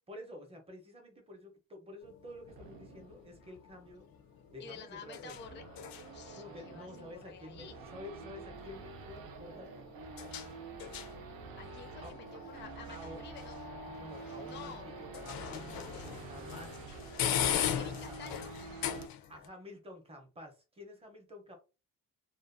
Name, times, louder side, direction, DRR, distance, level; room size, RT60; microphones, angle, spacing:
voice 1, 0.1-4.1 4.5-5.4 6.3-7.7 7.9-9.7 12.0-12.1 12.9-13.2 13.9-16.8 17.4-18.3 19.3-21.6, left 1 dB, 15° right, 3 dB, 0.6 m, -50 dB
sound 1, 2.0-19.5, left 9 dB, 85° left, 0.5 m, -41 dB
Race car auto racing / Idling / Accelerating revving vroom, 2.5-19.1, right 4 dB, 90° right, 0.6 m, -48 dB
voice 2, 4.6-5.6 6.1-7.8 11.6-13.6 14.4-14.9 17.6-18.5, left 6 dB, 35° left, 7 dB, 0.4 m, -50 dB
2.4 x 2.2 x 2.5 m, 0.31 s
wide cardioid pair, 145°, 34 cm